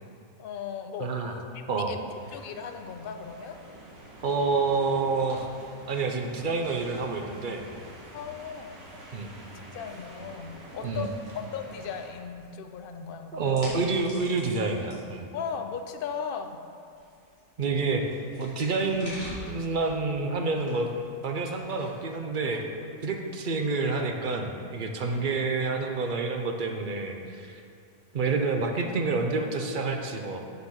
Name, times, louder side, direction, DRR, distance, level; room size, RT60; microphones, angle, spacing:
voice 1, 0.4-1.4 1.9-3.6 8.1-8.7 9.7-13.5 15.3-16.6 25.1-25.5, left 6 dB, 55° left, 6 dB, 0.6 m, -37 dB
voice 2, 1.0-1.3 1.7-1.9 4.2-5.5 5.9-7.7 9.1-9.3 10.8-11.1 13.3-15.3 17.6-18.0 18.4-20.9 21.2-27.6 28.1-30.4, right 3 dB, 45° right, 3 dB, 0.7 m, -28 dB
sound 1, 2.1-12.1, right 1 dB, 60° right, 2.1 m, -48 dB
sound 2, 4.0-23.2, left 1 dB, 20° left, 2.7 m, -50 dB
7.0 x 6.9 x 6.5 m, 2.4 s
omnidirectional pair, 1.6 m